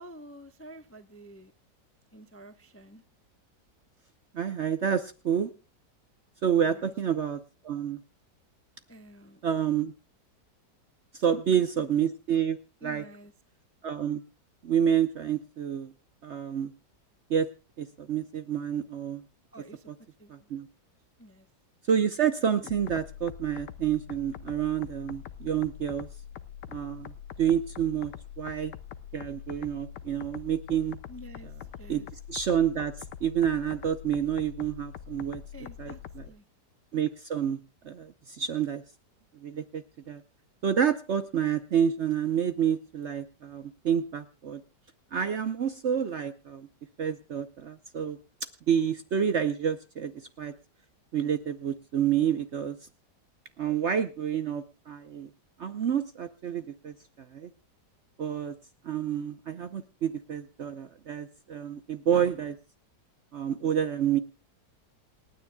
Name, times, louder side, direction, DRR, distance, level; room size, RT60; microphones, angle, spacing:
voice 1, 0.0-1.5 2.1-3.0 6.6-6.9 8.9-9.4 11.1-11.9 12.8-13.3 19.5-19.9 20.2-20.6 21.2-21.5 31.1-31.5 31.8-32.1 35.5-36.5, right 1 dB, 15° left, 8 dB, 0.6 m, -49 dB
voice 2, 4.3-5.5 6.4-8.0 9.4-9.9 11.1-13.0 13.8-14.2 14.6-15.9 16.2-16.7 17.3-17.5 17.8-19.2 20.3-20.7 21.9-26.1 26.7-27.1 27.4-28.7 29.1-31.0 31.9-32.0 32.3-32.9 33.2-35.4 35.8-36.3 36.9-37.6 37.8-38.8 39.4-40.2 40.6-44.6 45.1-46.7 47.0-48.2 48.7-50.5 51.1-52.7 53.6-55.3 55.6-56.9 57.3-57.5 58.2-58.5 58.8-62.6 63.3-64.2, right 8 dB, 55° right, 10 dB, 0.8 m, -28 dB
sound 1, 22.7-36.3, left 9 dB, 80° left, 1.4 m, -44 dB
28.0 x 9.7 x 2.2 m, 0.32 s
omnidirectional pair, 1.8 m